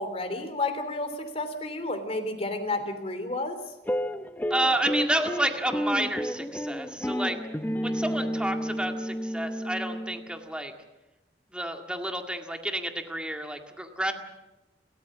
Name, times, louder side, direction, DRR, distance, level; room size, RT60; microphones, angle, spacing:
voice 1, 0.0-3.6, left 2 dB, 35° left, 7 dB, 3.1 m, -31 dB
sound 1, 3.9-10.4, equal, 10° left, 0.7 m, -31 dB
voice 2, 4.5-7.4 7.8-10.7 11.5-14.1, right 1 dB, 5° right, 4 dB, 2.0 m, -30 dB
30.0 x 14.0 x 7.4 m, 1.0 s
head